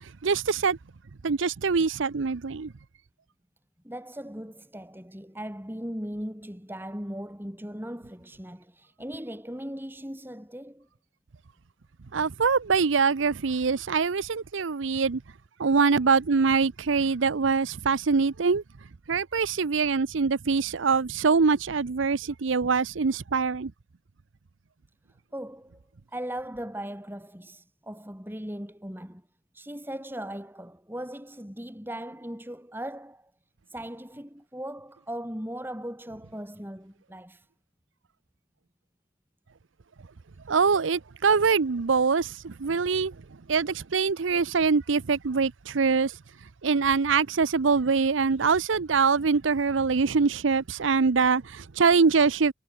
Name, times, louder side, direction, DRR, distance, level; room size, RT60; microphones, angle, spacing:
voice 1, 0.2-0.8 1.2-2.7 12.1-15.2 15.6-18.6 19.1-23.7 40.5-43.2 43.5-46.1 46.6-52.5, right 5 dB, 85° right, 0.7 m, -24 dB
voice 2, 3.8-10.9 25.3-25.8 26.1-29.3 29.5-33.3 33.7-37.5, right 1 dB, 10° right, 5.4 m, -38 dB
head